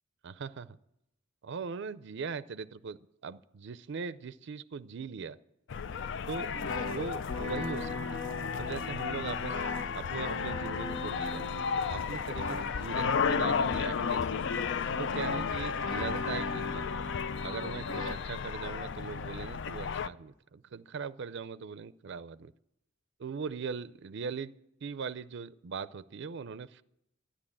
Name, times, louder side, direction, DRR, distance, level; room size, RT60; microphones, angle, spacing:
voice 1, 0.2-0.7 1.4-3.0 3.2-5.4 6.3-6.5 6.8-7.9 8.6-9.6 9.9-11.4 11.9-14.4 15.0-16.9 17.4-22.5 23.2-24.5 24.8-26.8, right 5 dB, 60° right, 15 dB, 0.5 m, -40 dB
sound 1, 5.7-20.1, left 6 dB, 65° left, 0.4 m, -34 dB
sound 2, 6.5-18.1, left 3 dB, 80° left, 1.2 m, -38 dB
13.0 x 10.5 x 8.6 m, 0.83 s
head